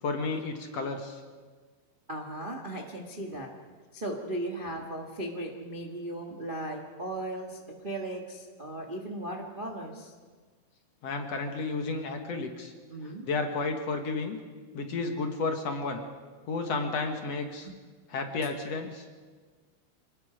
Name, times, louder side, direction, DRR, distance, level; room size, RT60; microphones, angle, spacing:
voice 1, 0.0-1.2 11.0-12.7 13.3-14.4 14.7-16.0 16.5-17.7 18.1-19.1, left 3 dB, 55° left, 5 dB, 2.1 m, -32 dB
voice 2, 2.1-3.5 3.9-10.1 12.9-13.2 17.6-17.8, right 1 dB, 85° right, 1 dB, 0.4 m, -37 dB
27.0 x 19.5 x 5.1 m, 1.5 s
omnidirectional pair, 4.2 m